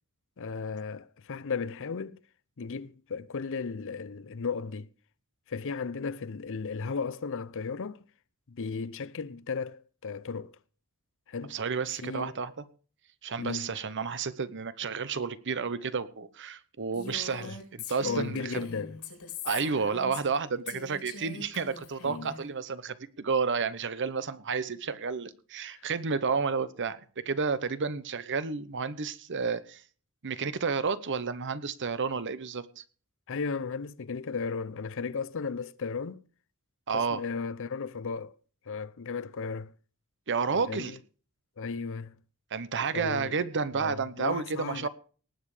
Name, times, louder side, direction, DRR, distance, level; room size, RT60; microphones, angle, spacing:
voice 1, 0.4-2.2 2.6-4.9 5.5-8.0 8.5-10.5 11.3-11.6 12.0-12.3 13.4-13.7 17.4-17.5 18.0-19.0 22.0-22.3 33.3-36.2 36.9-38.3 38.7-39.7 40.7-41.0 41.6-42.1 42.9-43.4 43.8-44.9, left 5 dB, 60° left, 0.6 m, -35 dB
voice 2, 11.5-12.6 13.2-18.6 19.4-29.8 30.2-32.8 36.9-37.2 40.3-41.0 42.5-44.9, right 5 dB, 55° right, 0.9 m, -31 dB
Female speech woman speaking, 16.9-20.4 20.7-22.4, left 4 dB, 85° left, 3.9 m, -42 dB
19.0 x 7.4 x 4.9 m
head